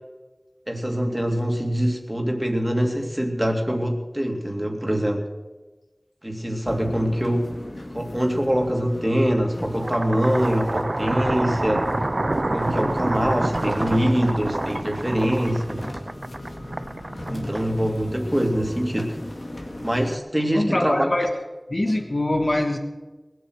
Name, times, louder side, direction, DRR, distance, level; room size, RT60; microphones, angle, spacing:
voice 1, 0.7-5.2 6.2-7.5 7.9-11.9 12.5-15.8 17.3-19.1 19.8-21.1, equal, 20° right, 2 dB, 2.5 m, -24 dB
sound 1, 6.7-20.2, left 1 dB, 80° left, 2.0 m, -37 dB
sound 2, 9.7-17.9, right 2 dB, 65° right, 0.4 m, -28 dB
voice 2, 20.5-21.3 21.7-22.8, left 1 dB, 60° left, 5 dB, 1.5 m, -23 dB
20.5 x 8.2 x 6.4 m, 1.2 s
wide cardioid pair, 40°, 0 cm